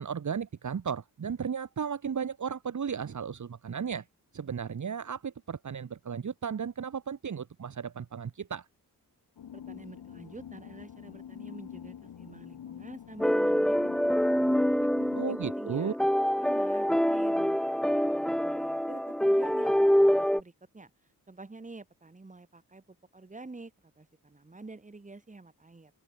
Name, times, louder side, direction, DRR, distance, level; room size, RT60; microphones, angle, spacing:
voice 1, 0.0-4.1 4.3-8.7 15.1-15.9, right 7 dB, 50° right, 3.5 m, -34 dB
sound 1, 9.4-15.2, left 9 dB, 90° left, 4.4 m, -46 dB
voice 2, 9.5-14.9 15.3-20.9 21.3-25.9, right 3 dB, 20° right, 7.7 m, -48 dB
sound 2, 13.2-20.4, equal, ahead, 1.1 m, -26 dB
open air
wide cardioid pair, 170°, 37 cm